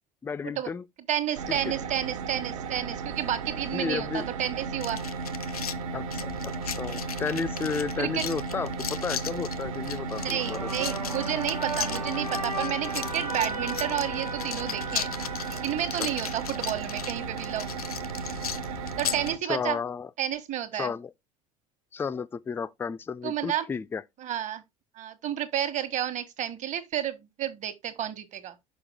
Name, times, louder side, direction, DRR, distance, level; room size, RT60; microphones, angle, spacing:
voice 1, 0.2-0.8 1.5-1.7 3.7-4.3 5.9-10.7 16.0-16.1 19.5-20.1 20.7-21.1 21.9-24.0, left 5 dB, 10° left, 0.3 m, -33 dB
voice 2, 1.1-5.0 8.0-8.3 10.2-15.1 15.5-17.7 19.0-19.8 20.2-20.9 23.2-23.7 24.2-24.6 24.9-28.5, right 10 dB, 40° right, 1.2 m, -31 dB
sound 1, 1.3-19.4, right 4 dB, 65° right, 0.8 m, -35 dB
sound 2, 4.8-19.3, left 8 dB, 80° left, 0.6 m, -37 dB
sound 3, 10.1-16.5, right 2 dB, 90° right, 1.1 m, -36 dB
6.2 x 5.0 x 3.5 m
figure-of-eight pair, 65°, 19 cm